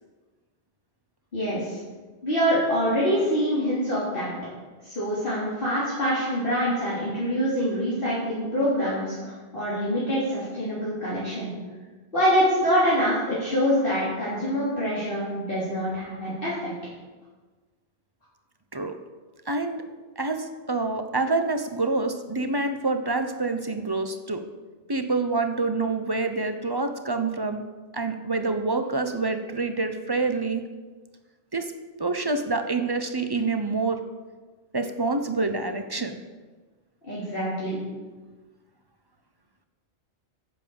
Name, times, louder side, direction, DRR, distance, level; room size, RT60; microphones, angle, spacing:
voice 1, 1.3-1.8 2.2-4.4 4.8-11.5 12.1-16.7 37.0-37.8, equal, 50° left, -9 dB, 3.5 m, -25 dB
voice 2, 19.5-19.8 20.2-24.4 24.9-27.7 27.9-30.7 31.5-31.7 32.0-34.0 34.7-36.2, right 3 dB, 20° right, 7 dB, 0.9 m, -27 dB
11.0 x 8.0 x 7.1 m, 1.3 s
omnidirectional pair, 1.2 m